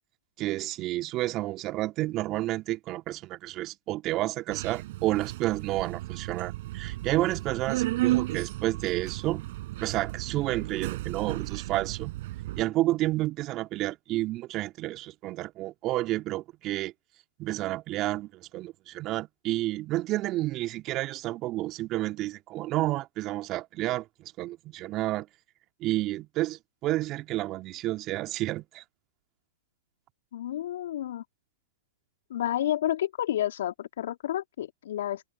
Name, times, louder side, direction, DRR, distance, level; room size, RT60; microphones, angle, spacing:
voice 1, 0.4-9.4 9.8-12.1 12.5-16.9 17.4-25.3 25.8-28.8, right 16 dB, 35° right, 2.5 m, -30 dB
Subway metro underground, 4.5-12.6, right 17 dB, 55° right, 7.0 m, -33 dB
voice 2, 30.3-31.2 32.3-35.2, left 12 dB, 65° left, 2.7 m, -30 dB
hypercardioid pair, 110°, 0 cm